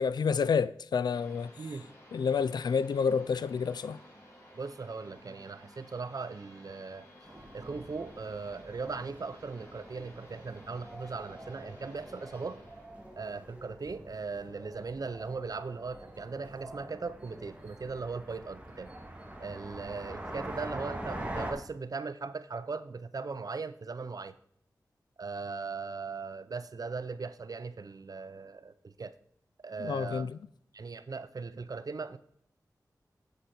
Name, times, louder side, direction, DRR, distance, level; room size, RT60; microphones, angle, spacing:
voice 1, 0.0-1.5 2.1-4.0 29.8-30.4, left 6 dB, 85° left, 0.3 m, -29 dB
sound 1, 1.1-14.5, equal, 35° left, 4.2 m, -56 dB
voice 2, 1.6-1.9 4.5-7.1 7.5-12.6 13.2-18.9 19.4-24.4 25.2-29.1 29.6-30.4 30.7-32.2, right 4 dB, 60° right, 0.6 m, -39 dB
sound 2, 7.2-21.5, right 1 dB, 20° right, 2.0 m, -45 dB
8.0 x 7.8 x 4.3 m
cardioid pair, 50°, 7 cm